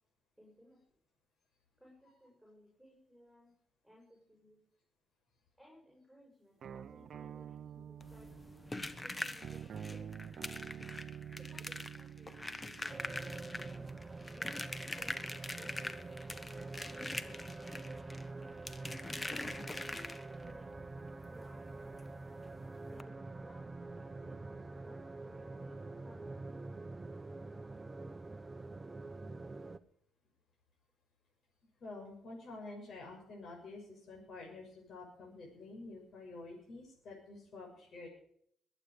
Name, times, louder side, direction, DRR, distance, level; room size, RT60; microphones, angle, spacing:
voice 1, 0.4-0.8 1.8-3.5 3.8-4.6 5.6-8.3 8.9-10.1 11.4-13.8 14.3-16.4 16.8-18.3 19.4-21.0 21.3-22.1 22.9-25.7 26.0-26.8, equal, ahead, -2 dB, 7.0 m, -61 dB
sound 1, 6.6-14.1, right 8 dB, 60° right, 0.6 m, -48 dB
sound 2, 8.0-20.5 22.0-22.1 22.4-22.5 22.9-23.0, left 2 dB, 20° left, 1.2 m, -43 dB
sound 3, 12.9-29.8, right 3 dB, 20° right, 1.0 m, -46 dB
voice 2, 31.8-38.1, left 2 dB, 60° left, -1 dB, 6.3 m, -49 dB
21.0 x 9.2 x 5.2 m, 0.66 s
cardioid pair, 90°, 0 cm